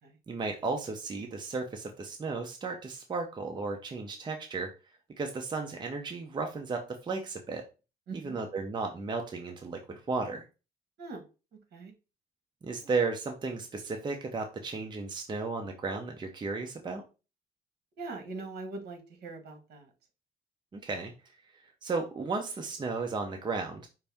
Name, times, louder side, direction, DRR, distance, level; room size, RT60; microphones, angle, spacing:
voice 1, 0.3-4.7 5.2-7.6 8.1-10.4 12.6-17.0 20.7-21.1 21.8-23.9, right 4 dB, 25° right, 3 dB, 0.7 m, -34 dB
voice 2, 8.1-8.4 11.0-11.2 11.7-11.9 18.0-19.9, right 3 dB, 70° right, 5 dB, 1.3 m, -41 dB
5.5 x 2.6 x 3.5 m, 0.31 s
cardioid pair, 125°, 17 cm